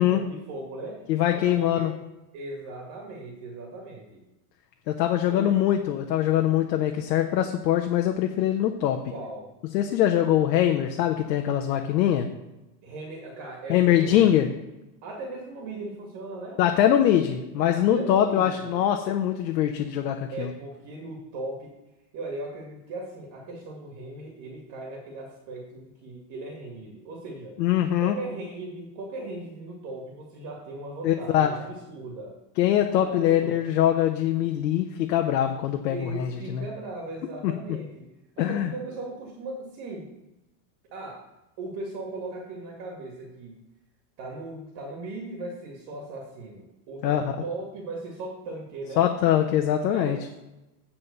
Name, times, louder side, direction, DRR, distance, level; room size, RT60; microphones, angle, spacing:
voice 1, 0.0-1.0 1.3-1.9 2.3-4.2 5.3-5.6 9.1-9.5 12.8-14.3 15.0-16.6 17.6-18.8 20.3-21.7 22.1-27.6 28.0-32.3 33.0-33.7 35.9-38.1 38.4-40.1 40.9-41.2 41.6-43.6 44.2-49.1 49.9-50.3, right 2 dB, 45° right, -1 dB, 2.1 m, -38 dB
voice 2, 1.1-1.9 4.9-9.0 9.7-12.3 13.7-14.5 16.6-20.5 27.6-28.2 31.0-31.6 32.6-36.6 37.4-37.5 38.4-38.7 47.0-47.2 49.0-50.2, left 11 dB, 80° left, 4 dB, 1.0 m, -23 dB
9.1 x 4.3 x 6.6 m, 1.0 s
supercardioid pair, 140°, 49 cm